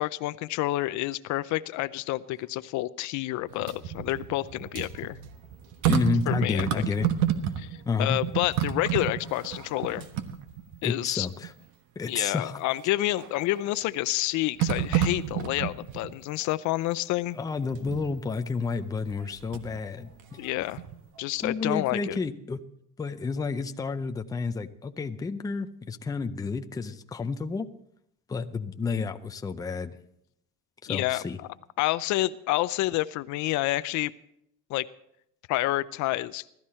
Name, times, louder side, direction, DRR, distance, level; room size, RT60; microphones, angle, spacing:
voice 1, 0.0-5.2 6.3-6.8 7.6-10.1 10.8-11.3 12.1-17.4 20.4-20.8 21.2-22.2 30.9-31.2 31.8-34.1 34.7-34.9 35.5-36.4, left 17 dB, 60° left, 15 dB, 0.5 m, -29 dB
sound 1, 3.5-7.8 8.1-10.9 11.4-11.5 13.2-13.7 14.6-16.1 17.7-18.2 19.1-19.8 20.2-21.2 21.5-21.6, right 10 dB, 60° right, 1.3 m, -30 dB
voice 2, 5.9-7.1 7.9-8.2 10.8-11.5 12.0-12.6 17.4-20.1 21.4-22.6 23.0-27.7 28.3-29.9 30.8-31.4, left 4 dB, 10° left, 7 dB, 0.5 m, -30 dB
17.0 x 13.0 x 4.3 m, 0.76 s
cardioid pair, 145°, 34 cm